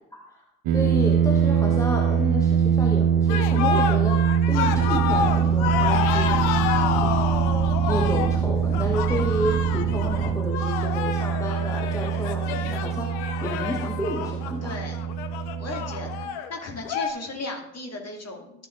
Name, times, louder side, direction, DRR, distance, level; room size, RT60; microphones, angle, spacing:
voice 1, 0.1-0.4 0.7-7.2 7.9-14.7, equal, 5° left, 0 dB, 1.1 m, -31 dB
sound 1, 0.7-16.3, right 8 dB, 50° right, 0.9 m, -23 dB
sound 2, 3.3-17.1, left 8 dB, 60° left, 0.9 m, -29 dB
sound 3, 4.6-10.3, right 2 dB, 30° right, 2.6 m, -33 dB
voice 2, 14.6-15.0 15.6-16.1 16.5-18.5, left 2 dB, 30° left, 1 dB, 2.2 m, -35 dB
13.0 x 6.7 x 2.5 m, 0.82 s
figure-of-eight pair, 50°, 49 cm